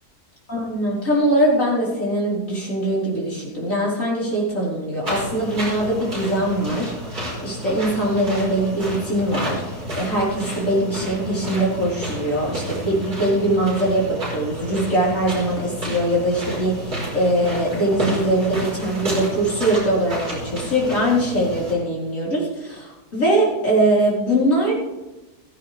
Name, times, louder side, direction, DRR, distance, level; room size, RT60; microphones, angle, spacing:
voice 1, 0.5-24.7, right 1 dB, 50° left, -6 dB, 5.0 m, -22 dB
sound 1, 5.0-21.7, equal, 65° right, 5.6 m, -31 dB
16.0 x 14.5 x 3.5 m, 1.0 s
omnidirectional pair, 1.8 m